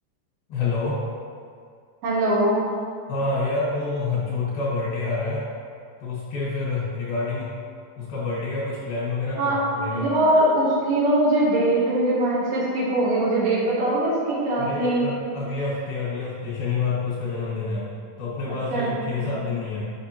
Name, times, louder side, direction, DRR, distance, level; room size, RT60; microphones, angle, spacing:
voice 1, 0.5-1.0 3.1-5.4 6.0-7.5 8.0-10.0 14.6-19.8, left 3 dB, 90° left, -7 dB, 3.2 m, -28 dB
voice 2, 2.0-2.6 9.4-9.6 9.9-15.1 18.7-18.9 19.2-19.3, right 1 dB, 75° right, -7 dB, 3.2 m, -21 dB
7.8 x 5.8 x 2.9 m, 2.2 s
omnidirectional pair, 4.0 m